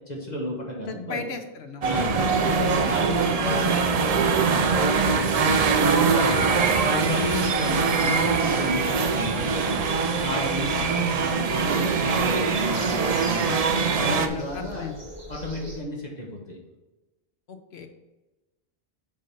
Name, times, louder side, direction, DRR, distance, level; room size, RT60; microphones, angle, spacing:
voice 1, 0.0-1.2 1.9-2.3 2.6-4.8 5.1-6.4 6.8-14.9 15.3-16.6, left 1 dB, 45° left, -3 dB, 1.5 m, -32 dB
voice 2, 0.9-2.1 14.0-14.9 17.5-17.9, left 5 dB, 85° left, 6 dB, 1.1 m, -36 dB
sound 1, 1.8-15.8, right 1 dB, 30° right, 1.3 m, -42 dB
sound 2, 1.8-14.3, right 5 dB, 45° right, 0.6 m, -23 dB
7.3 x 4.0 x 5.3 m, 1.1 s
omnidirectional pair, 1.0 m